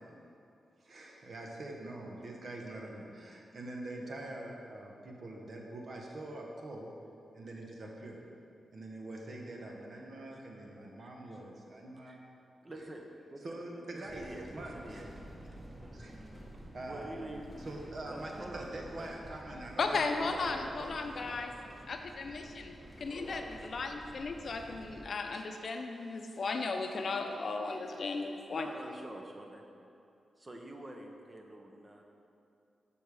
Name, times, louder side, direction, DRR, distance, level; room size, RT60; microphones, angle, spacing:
voice 1, 0.8-6.9 7.3-8.2 8.7-12.2 13.4-14.2 14.5-15.0 15.9-16.2 16.7-17.2 17.6-20.1, right 1 dB, 60° right, 0 dB, 1.1 m, -44 dB
voice 2, 10.3-11.4 12.0-12.2 12.6-15.1 16.8-17.5 17.8-19.1 20.1-21.9 23.1-23.5 27.7-29.6 30.4-32.0, right 1 dB, 35° right, 2 dB, 1.0 m, -48 dB
sound 1, 14.0-25.1, right 1 dB, 20° right, 1.6 m, -50 dB
voice 3, 19.8-21.5 21.9-28.7, left 3 dB, 60° left, 5 dB, 0.6 m, -36 dB
7.0 x 5.4 x 4.8 m, 2.6 s
cardioid pair, 50°, 0 cm